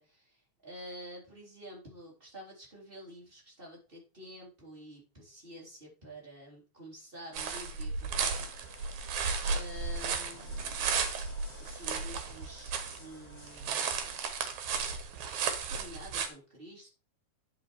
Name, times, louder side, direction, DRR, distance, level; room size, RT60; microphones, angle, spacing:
voice 1, 0.0-9.2 9.5-10.9 11.6-14.0 15.3-16.9, equal, 15° right, -3 dB, 3.5 m, -49 dB
sound 1, 7.3-13.0 13.3-16.3, right 5 dB, 75° right, 2.5 m, -34 dB
sound 2, 8.3-14.3, equal, 10° left, 3.7 m, -53 dB
9.4 x 5.4 x 4.5 m, 0.34 s
omnidirectional pair, 3.4 m